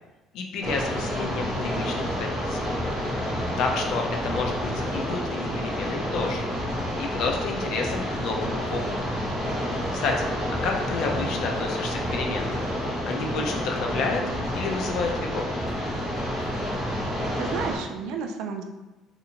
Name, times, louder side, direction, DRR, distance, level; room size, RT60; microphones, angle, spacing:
voice 1, 0.3-2.6 3.6-6.5 7.0-9.1 9.9-12.6 13.1-14.2 14.5-15.5, left 4 dB, 60° left, 2 dB, 0.4 m, -30 dB
sound 1, 0.6-17.8, equal, 20° left, 0.9 m, -29 dB
voice 2, 17.2-18.6, right 5 dB, 70° right, 4 dB, 0.3 m, -33 dB
2.8 x 2.5 x 2.7 m, 1.1 s
cardioid pair, 170°, 0 cm